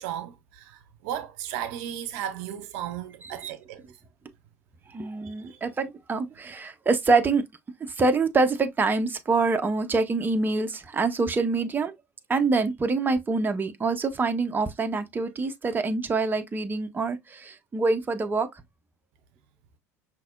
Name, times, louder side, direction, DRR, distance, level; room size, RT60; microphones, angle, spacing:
voice 1, 0.0-3.9 5.2-5.6, right 10 dB, 65° right, 0.6 m, -35 dB
voice 2, 4.9-7.4 8.0-11.9 12.3-18.5, right 3 dB, 20° right, 0.8 m, -25 dB
5.8 x 2.9 x 2.4 m
hypercardioid pair, 65°, 9 cm